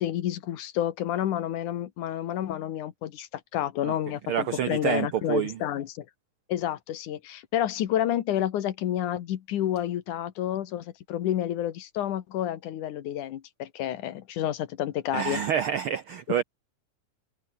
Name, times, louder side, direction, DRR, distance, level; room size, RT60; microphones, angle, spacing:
voice 1, 0.0-6.1 6.5-15.4, left 11 dB, 85° left, 2.9 m, -30 dB
voice 2, 4.3-5.6 15.1-16.4, right 9 dB, 80° right, 1.2 m, -27 dB
omnidirectional pair, 3.5 m